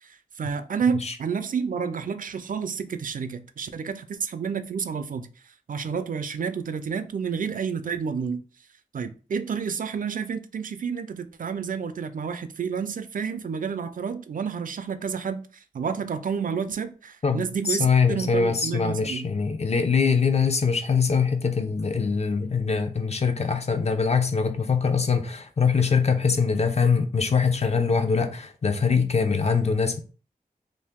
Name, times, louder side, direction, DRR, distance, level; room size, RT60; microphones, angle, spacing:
voice 1, 0.0-5.3 5.7-8.4 8.9-19.3, right 6 dB, 65° right, 0.4 m, -30 dB
voice 2, 17.2-30.0, left 5 dB, 45° left, 0.5 m, -23 dB
2.7 x 2.6 x 3.5 m
wide cardioid pair, 80°, 15 cm